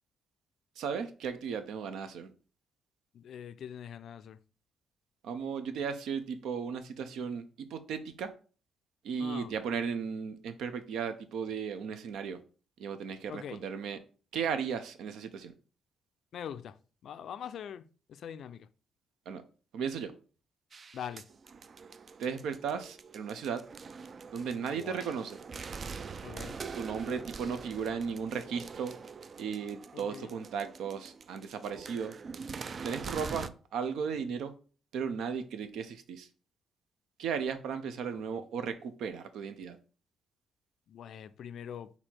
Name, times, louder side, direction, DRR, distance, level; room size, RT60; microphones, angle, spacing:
voice 1, 0.8-2.3 5.2-8.3 9.0-12.4 12.8-14.0 14.3-15.5 19.3-19.4 19.7-20.1 22.2-23.6 24.3-25.4 26.7-28.9 29.4-32.1 32.8-34.5 34.9-36.3 37.2-39.8, right 6 dB, 80° right, 0.6 m, -35 dB
voice 2, 3.1-4.4 9.2-9.5 13.3-13.6 16.3-16.7 17.0-17.8 18.1-18.7 20.9-21.2 24.7-25.1 26.2-26.6 29.9-30.3 38.1-38.4 40.9-41.9, left 9 dB, 65° left, 0.3 m, -43 dB
sound 1, 20.7-33.5, right 5 dB, 45° right, 0.3 m, -44 dB
4.4 x 2.8 x 4.3 m
cardioid pair, 90°, 0 cm